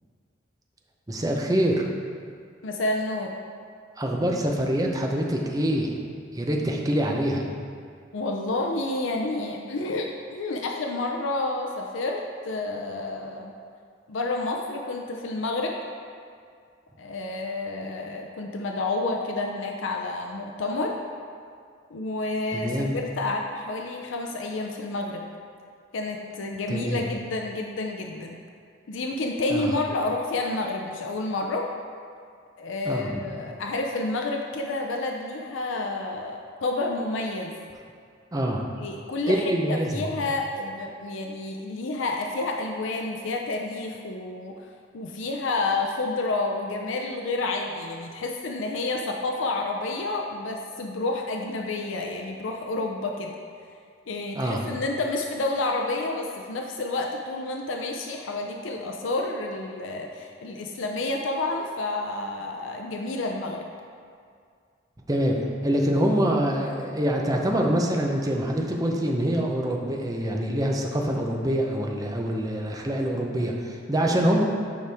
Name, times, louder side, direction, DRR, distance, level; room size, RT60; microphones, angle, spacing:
voice 1, 1.1-1.9 4.0-6.0 6.3-7.4 22.5-22.9 26.7-27.0 29.5-29.7 32.8-33.3 38.3-38.6 39.3-40.1 54.3-54.6 65.1-65.4 65.6-74.4, right 1 dB, 20° right, 0 dB, 0.6 m, -25 dB
voice 2, 2.6-3.4 8.1-13.5 14.1-15.7 17.0-20.9 21.9-25.2 25.9-28.4 28.9-31.7 32.6-37.5 38.8-44.7 44.9-53.4 54.1-63.7, left 2 dB, 75° left, 1 dB, 0.5 m, -29 dB
9.2 x 4.8 x 3.5 m, 2.2 s
head